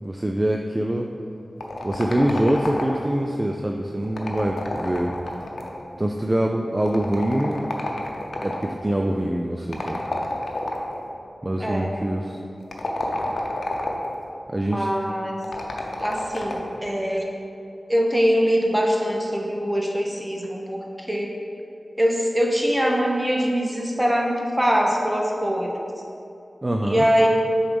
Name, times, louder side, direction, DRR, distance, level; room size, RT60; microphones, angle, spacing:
voice 1, 0.0-1.1 1.8-5.2 6.0-7.7 8.4-10.0 11.4-12.4 14.5-14.9 26.6-27.1, right 1 dB, 25° right, 2 dB, 0.4 m, -24 dB
sound 1, 1.6-3.2 4.0-5.9 6.9-8.7 9.7-11.0 12.6-14.2 15.4-16.8, left 2 dB, 85° left, 0.7 m, -30 dB
voice 2, 11.6-11.9 14.6-15.4 16.0-17.3 17.9-21.3 22.0-25.7 26.8-27.3, equal, 10° right, -1 dB, 0.9 m, -23 dB
6.7 x 4.0 x 5.1 m, 2.6 s
wide cardioid pair, 65°, 0 cm